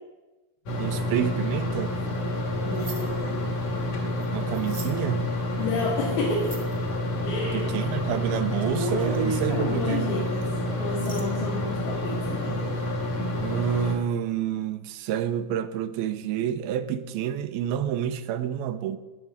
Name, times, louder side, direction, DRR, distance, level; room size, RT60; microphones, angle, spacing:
sound 1, 0.7-13.9, left 1 dB, 60° left, 3.6 m, -29 dB
voice 1, 0.8-2.0 4.3-5.3 7.4-10.1 13.4-19.0, right 10 dB, 85° right, 2.6 m, -29 dB
voice 2, 2.7-3.4 5.6-6.5 7.2-7.7 9.5-10.5 10.8-12.8, left 2 dB, 80° left, 4.3 m, -31 dB
sound 2, 2.8-3.0 4.5-4.9 6.4-6.7 7.6-7.8 8.1-8.2 8.5-9.9 10.4-10.5 11.0-11.2, right 2 dB, 35° right, 0.5 m, -32 dB
16.5 x 5.9 x 9.5 m
omnidirectional pair, 4.4 m